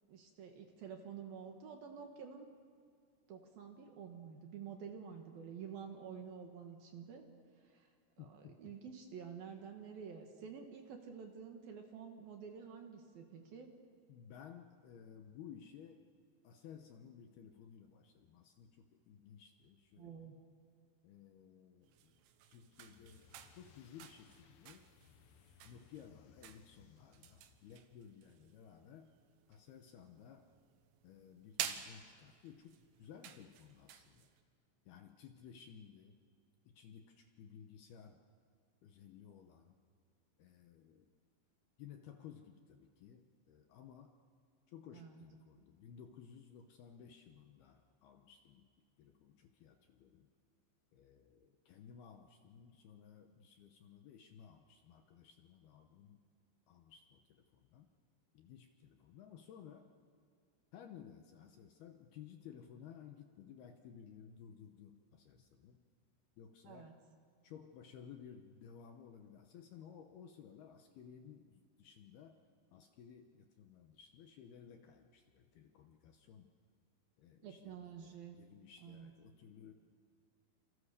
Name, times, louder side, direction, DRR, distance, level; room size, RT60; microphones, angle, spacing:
voice 1, 0.1-2.5 3.3-7.2 7.6-7.9 8.2-13.7 20.0-20.4 44.9-45.2 66.7-66.9 77.4-78.4 78.8-79.1, right 7 dB, 60° right, 4 dB, 3.1 m, -50 dB
voice 2, 8.2-8.8 14.1-16.1 16.4-20.3 21.0-22.2 22.5-24.8 25.6-29.1 29.5-30.5 31.0-34.3 34.9-36.2 36.7-38.2 38.8-39.8 40.4-41.1 41.8-44.2 44.7-48.7 49.0-50.3 50.9-56.2 56.7-57.9 58.3-59.9 60.7-65.9 66.4-66.9 67.4-72.4 72.7-76.5 77.2-79.7, left 8 dB, 70° left, 5 dB, 2.6 m, -56 dB
sound 1, 21.8-34.4, right 10 dB, 80° right, 3.6 m, -51 dB
sound 2, 22.7-28.0, left 9 dB, 90° left, 1.9 m, -66 dB
28.5 x 28.0 x 6.8 m, 2.1 s
omnidirectional pair, 5.6 m